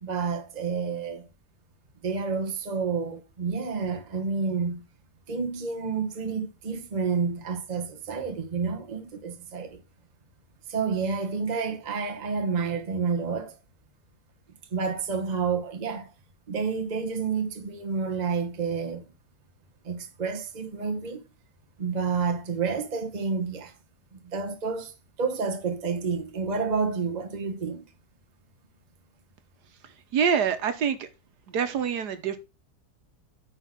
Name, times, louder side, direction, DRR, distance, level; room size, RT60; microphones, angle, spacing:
voice 1, 0.0-1.3 2.0-4.8 5.3-9.8 10.7-13.5 14.7-16.1 16.5-19.0 19.8-21.2 21.8-23.7 24.1-27.8, right 5 dB, 35° right, 0.8 m, -29 dB
voice 2, 30.1-31.1 31.5-32.4, right 7 dB, 70° right, 1.6 m, -25 dB
9.5 x 4.1 x 5.9 m
omnidirectional pair, 1.9 m